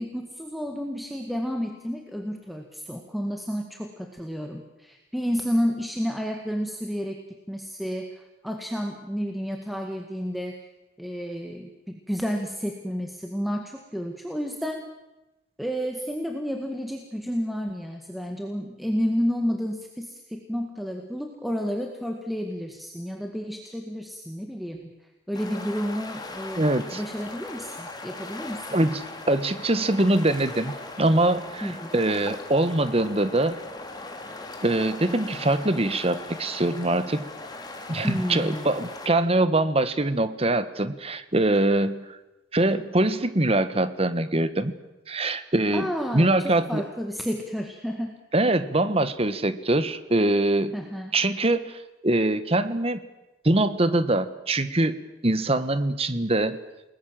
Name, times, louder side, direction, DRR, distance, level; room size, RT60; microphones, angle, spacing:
voice 1, 0.0-7.2 7.5-10.6 11.0-14.8 15.6-24.9 25.3-26.6 26.9-28.8 31.6-31.9 38.0-38.7 45.7-48.2 50.7-51.1, equal, ahead, 3 dB, 1.9 m, -31 dB
sound 1, 25.3-39.1, left 2 dB, 25° left, 2.9 m, -39 dB
voice 2, 26.6-27.0 28.7-30.7 31.0-33.6 34.6-37.3 37.9-42.2 42.5-44.7 45.1-46.8 48.3-50.8 51.1-53.0 53.4-55.0 55.2-56.6, right 2 dB, 35° right, 12 dB, 1.4 m, -23 dB
30.0 x 20.0 x 7.7 m, 1.0 s
head